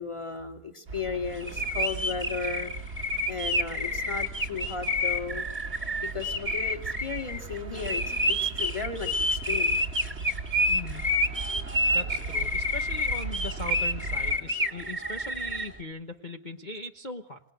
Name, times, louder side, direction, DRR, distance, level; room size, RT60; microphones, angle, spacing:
voice 1, 0.0-2.7 3.3-5.5 6.0-9.8, left 5 dB, 15° left, 4 dB, 2.4 m, -35 dB
sound 1, 0.9-14.4, right 4 dB, 40° right, 1.3 m, -39 dB
sound 2, 1.4-15.7, left 1 dB, 5° right, 2.0 m, -29 dB
voice 2, 10.7-11.1 11.9-17.4, left 2 dB, 35° left, 4 dB, 0.9 m, -39 dB
27.0 x 18.5 x 9.2 m, 0.70 s
omnidirectional pair, 2.1 m